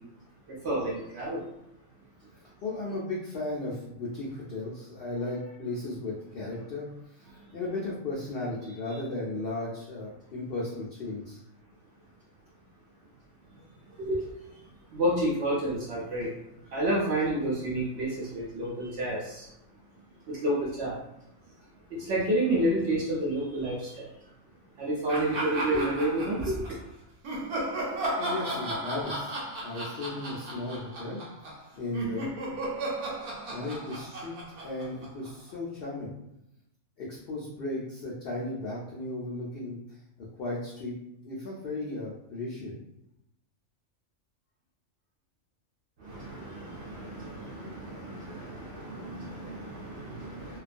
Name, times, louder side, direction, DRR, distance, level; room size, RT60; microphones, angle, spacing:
voice 1, 0.5-1.4 7.4-7.5 13.5-14.6 14.9-19.5 20.3-21.0 21.9-24.1 24.8-26.8 46.0-50.6, right 1 dB, 65° right, -4 dB, 0.7 m, -30 dB
voice 2, 2.6-11.4 27.8-31.2 31.8-32.3 33.5-36.1 37.0-40.9 41.2-42.8, left 2 dB, 75° left, -5 dB, 0.5 m, -36 dB
sound 1, 25.1-26.7 27.2-35.5, right 1 dB, 85° right, 1.1 m, -35 dB
2.4 x 2.2 x 2.4 m, 0.83 s
omnidirectional pair, 1.5 m